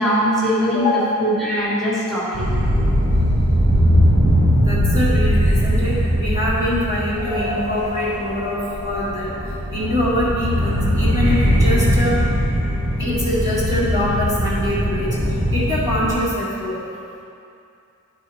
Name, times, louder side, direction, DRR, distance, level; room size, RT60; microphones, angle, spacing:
voice 1, 0.0-2.5, equal, ahead, -10 dB, 1.9 m, -21 dB
voice 2, 0.7-1.2 4.6-9.3 9.7-12.2 13.0-15.1 15.5-16.8, left 1 dB, 15° right, -10 dB, 2.0 m, -23 dB
sound 1, 2.3-16.1, equal, 65° right, 1.7 m, -20 dB
12.5 x 4.5 x 4.2 m, 2.5 s
head